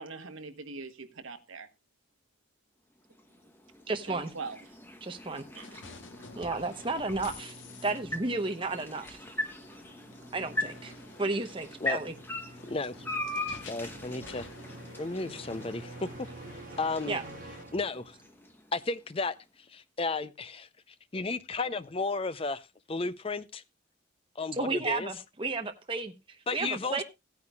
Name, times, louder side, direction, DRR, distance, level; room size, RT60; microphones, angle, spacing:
voice 1, 0.0-1.7 4.1-4.6 5.5-5.7, right 4 dB, 80° right, 1.2 m, -41 dB
sound 1, 3.0-19.2, left 2 dB, 10° left, 1.0 m, -41 dB
voice 2, 3.9-4.3 5.0-5.4 5.7-5.8 6.3-7.5 7.8-9.2 10.3-10.9 11.2-12.1 17.1-17.2 24.6-26.1 26.5-27.0, right 3 dB, 25° right, 0.8 m, -32 dB
sound 2, 5.6-17.6, left 4 dB, 70° left, 1.2 m, -51 dB
sound 3, 5.8-18.4, right 2 dB, 45° right, 1.4 m, -50 dB
voice 3, 12.6-12.9 13.7-14.5 15.0-16.1 16.8-17.2 17.7-18.2 18.7-19.3 19.7-20.7 21.1-23.6 24.4-25.1 26.5-27.0, left 3 dB, 30° left, 0.5 m, -33 dB
16.5 x 9.6 x 2.3 m
head